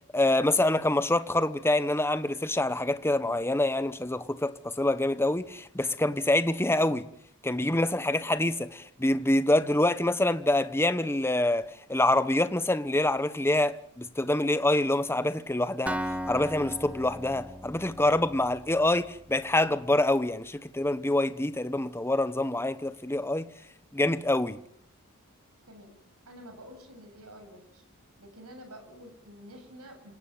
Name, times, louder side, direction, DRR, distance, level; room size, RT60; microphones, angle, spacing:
voice 1, 0.1-7.1 7.4-16.0 16.3-23.5 23.9-24.6, left 1 dB, 10° left, 1.1 m, -26 dB
Acoustic guitar, 15.9-19.7, equal, 5° right, 1.6 m, -37 dB
voice 2, 26.3-27.8 28.2-30.2, equal, 85° right, 7.7 m, -48 dB
27.5 x 17.5 x 9.2 m
head